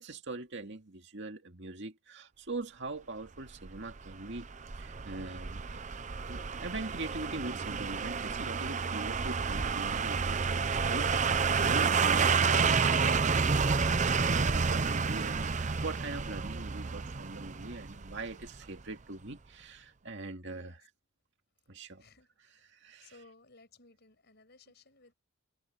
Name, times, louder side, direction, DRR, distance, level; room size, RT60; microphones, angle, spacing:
voice 1, 0.0-4.5 4.8-5.8 6.3-13.2 14.1-20.9 21.7-22.0 22.7-23.2, right 2 dB, 55° right, 2.3 m, -42 dB
sound 1, 3.6-18.6 18.9-19.0, right 5 dB, 35° right, 0.6 m, -30 dB
voice 2, 20.5-20.8 22.0-22.3 23.0-25.1, left 3 dB, 50° left, 5.7 m, -59 dB
head